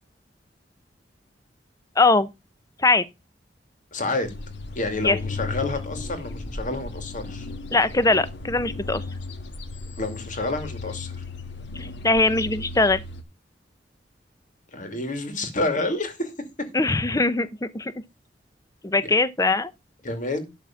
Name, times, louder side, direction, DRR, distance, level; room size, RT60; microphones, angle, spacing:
voice 1, 2.0-2.3 2.8-3.0 5.0-5.2 7.7-9.0 11.7-13.0 16.7-17.9 18.8-19.7, left 3 dB, 20° left, 0.8 m, -21 dB
voice 2, 3.9-4.3 4.8-7.5 10.0-11.2 14.7-16.3 19.0-19.2 20.0-20.5, left 2 dB, 45° left, 2.6 m, -29 dB
sound 1, 4.2-13.2, left 3 dB, 70° left, 1.5 m, -35 dB
12.0 x 4.0 x 7.2 m
head